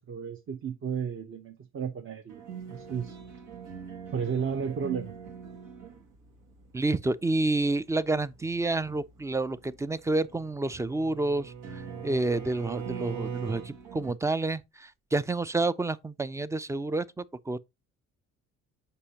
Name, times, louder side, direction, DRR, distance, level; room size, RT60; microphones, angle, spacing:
voice 1, 0.1-3.2 4.1-5.1, right 7 dB, 45° right, 0.8 m, -33 dB
sound 1, 2.3-14.1, right 6 dB, 85° right, 1.5 m, -46 dB
voice 2, 6.7-17.6, right 2 dB, 10° right, 0.3 m, -29 dB
Bowed string instrument, 10.3-13.7, right 6 dB, 65° right, 1.7 m, -38 dB
6.8 x 5.5 x 2.8 m
cardioid pair, 90°, 30 cm